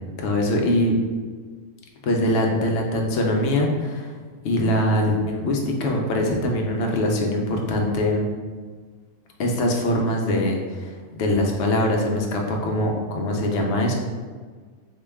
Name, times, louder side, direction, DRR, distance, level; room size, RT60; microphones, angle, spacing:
voice 1, 0.2-0.9 2.0-4.1 4.4-8.2 9.4-14.0, left 1 dB, 60° left, 1 dB, 0.7 m, -22 dB
3.7 x 2.2 x 3.4 m, 1.5 s
omnidirectional pair, 1.5 m